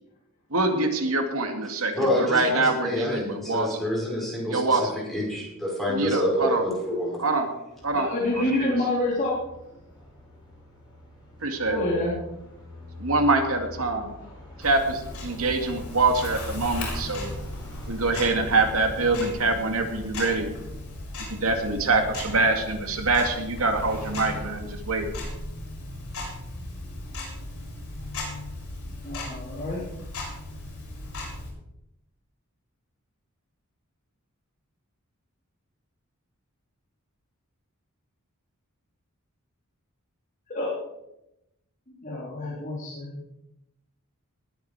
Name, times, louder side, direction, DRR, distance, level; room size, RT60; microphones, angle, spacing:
voice 1, 0.5-3.8 4.5-5.0 5.9-6.7 7.2-7.5 7.8-8.1 8.3-8.7 11.4-11.8 13.0-14.1 14.6-17.3 17.9-20.5 21.3-25.1, right 3 dB, 75° right, 5 dB, 2.4 m, -25 dB
voice 2, 1.9-4.8 5.1-7.2 8.4-8.5, left 1 dB, ahead, -5 dB, 5.4 m, -27 dB
sound 1, 7.7-20.2, left 1 dB, 20° left, 6.1 m, -43 dB
voice 3, 7.9-9.3 11.7-12.2 29.0-29.8 40.5-40.7 42.0-43.2, left 2 dB, 35° left, -6 dB, 3.6 m, -27 dB
Tick-tock, 14.6-31.5, left 1 dB, 75° left, 7.1 m, -37 dB
19.5 x 9.1 x 4.9 m, 0.87 s
head